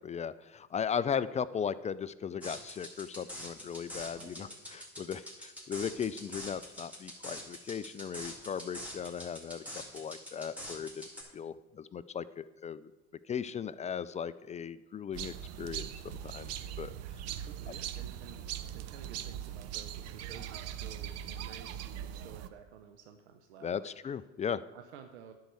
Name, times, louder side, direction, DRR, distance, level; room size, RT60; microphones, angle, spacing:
voice 1, 0.0-9.6 9.9-11.1 11.3-12.9 13.3-16.5 16.8-16.9 23.6-24.6, left 7 dB, 20° left, 16 dB, 0.4 m, -37 dB
sound 1, 2.4-11.2, equal, 5° right, 3.4 m, -45 dB
voice 2, 4.1-4.6 17.4-18.4 18.7-24.2 24.7-25.3, right 7 dB, 85° right, 6 dB, 0.8 m, -52 dB
sound 2, 15.1-22.5, right 10 dB, 50° right, 0.7 m, -41 dB
10.5 x 4.8 x 8.1 m, 1.1 s
hypercardioid pair, 85°, 32 cm